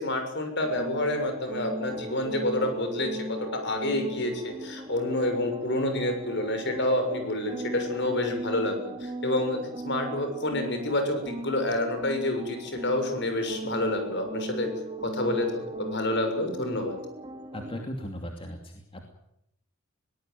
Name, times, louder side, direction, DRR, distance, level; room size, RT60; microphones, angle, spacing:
voice 1, 0.0-3.2 3.5-9.6 9.8-14.7 15.0-17.0, left 1 dB, 55° left, 6 dB, 6.6 m, -28 dB
sound 1, 0.6-17.8, right 1 dB, 25° right, 3.1 m, -38 dB
voice 2, 17.5-19.0, equal, 25° left, 3 dB, 2.8 m, -37 dB
22.5 x 18.5 x 9.3 m, 0.79 s
head